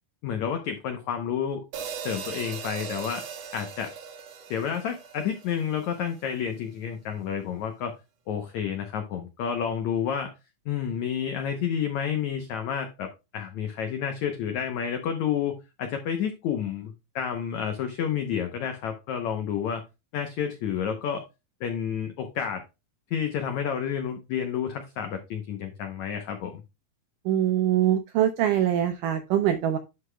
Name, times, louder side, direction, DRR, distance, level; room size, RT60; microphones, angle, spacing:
voice 1, 0.2-1.6 2.0-3.3 3.5-3.9 4.5-7.9 8.3-10.3 10.6-19.8 20.1-21.2 21.6-22.6 23.1-26.6, left 8 dB, 90° left, 7 dB, 1.6 m, -30 dB
sound 1, 1.7-6.1, right 7 dB, 70° right, 1.6 m, -39 dB
voice 2, 27.3-29.8, right 11 dB, 85° right, 8 dB, 1.8 m, -23 dB
11.5 x 5.7 x 2.3 m, 0.25 s
omnidirectional pair, 4.6 m